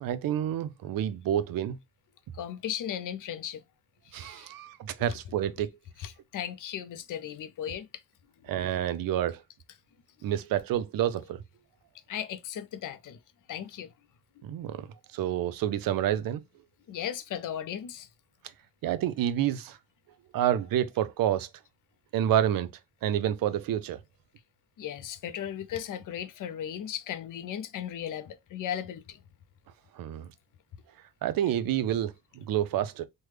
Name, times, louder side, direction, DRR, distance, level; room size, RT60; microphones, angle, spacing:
voice 1, 0.0-1.8 4.1-5.7 8.5-9.4 10.2-11.4 14.4-16.4 18.8-19.8 20.3-21.5 22.1-22.7 23.0-24.0 29.9-30.3 31.2-33.1, right 11 dB, 90° right, 0.5 m, -28 dB
voice 2, 2.3-3.6 4.1-4.5 6.0-7.9 12.1-13.2 13.5-13.9 14.4-14.5 16.9-18.1 24.8-29.2, left 9 dB, 70° left, 0.5 m, -36 dB
3.2 x 2.1 x 3.2 m
cardioid pair, 120°, 33 cm